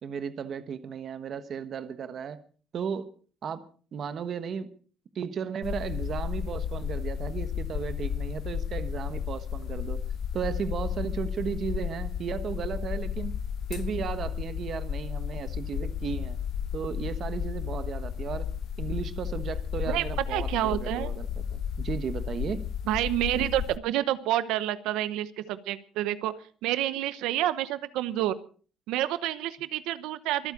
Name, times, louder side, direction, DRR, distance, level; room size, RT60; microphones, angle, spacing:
voice 1, 0.0-2.4 2.7-3.1 3.4-4.7 5.1-10.0 10.3-13.3 13.7-16.4 16.7-18.5 18.8-22.7, right 7 dB, 35° right, 12 dB, 1.1 m, -35 dB
sound 1, 5.6-23.8, left 8 dB, 45° left, 0.7 m, -33 dB
voice 2, 19.9-21.1 22.9-26.3 26.6-28.4 28.9-30.5, right 13 dB, 80° right, 14 dB, 0.9 m, -28 dB
24.5 x 9.0 x 4.9 m, 0.42 s
cardioid pair, 180°, 0 cm